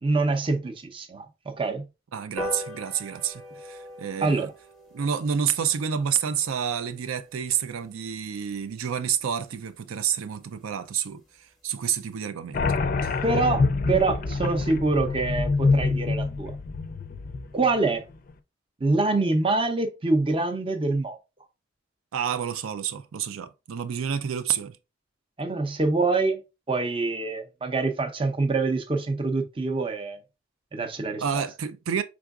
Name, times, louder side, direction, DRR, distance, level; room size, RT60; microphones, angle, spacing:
voice 1, 0.0-1.8 4.2-4.5 13.2-16.6 17.5-18.0 18.8-21.2 25.4-26.4 26.7-30.2 30.7-31.4, right 3 dB, 25° right, 0.5 m, -25 dB
voice 2, 2.1-4.5 4.9-12.6 13.0-13.2 22.1-24.8 31.2-32.0, right 8 dB, 85° right, 0.4 m, -29 dB
sound 1, 2.4-9.1 9.5-9.6 9.9-10.1 10.3-10.4 10.7-10.8 11.1-11.4 11.8-11.9, left 1 dB, ahead, 0.8 m, -42 dB
sound 2, 12.5-17.8, left 3 dB, 40° left, 0.4 m, -26 dB
4.8 x 3.5 x 2.3 m
head